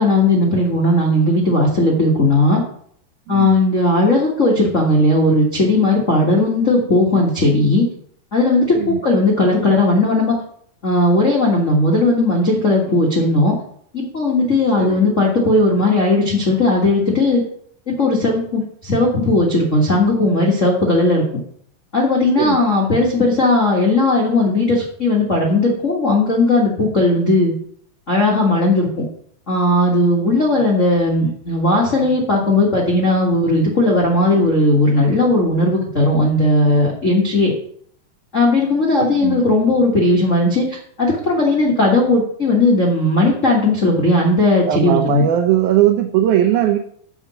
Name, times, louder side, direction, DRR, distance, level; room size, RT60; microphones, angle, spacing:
voice 1, 0.0-2.6 3.3-7.8 8.3-10.3 10.8-13.6 13.9-17.4 17.9-21.2 21.9-27.5 28.1-28.9 29.5-37.5 38.3-45.2, left 2 dB, 65° left, -4 dB, 0.7 m, -16 dB
voice 2, 3.3-3.6 8.7-9.0 14.8-15.0 22.4-22.6 39.0-39.5 44.7-46.8, right 11 dB, 85° right, 6 dB, 1.7 m, -18 dB
7.1 x 6.0 x 6.8 m, 0.63 s
omnidirectional pair, 4.3 m